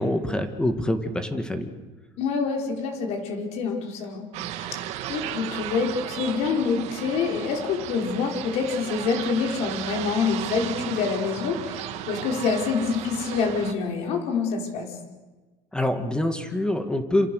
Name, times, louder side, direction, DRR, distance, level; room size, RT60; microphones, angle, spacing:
voice 1, 0.0-1.7 15.7-17.3, left 1 dB, 5° left, 7 dB, 2.1 m, -25 dB
voice 2, 2.2-4.3 4.6-4.8 5.1-14.9, left 5 dB, 60° left, 2 dB, 5.5 m, -26 dB
sound 1, 4.3-13.7, right 12 dB, 65° right, 2.1 m, -35 dB
28.0 x 27.5 x 6.6 m, 1.3 s
cardioid pair, 140°, 12 cm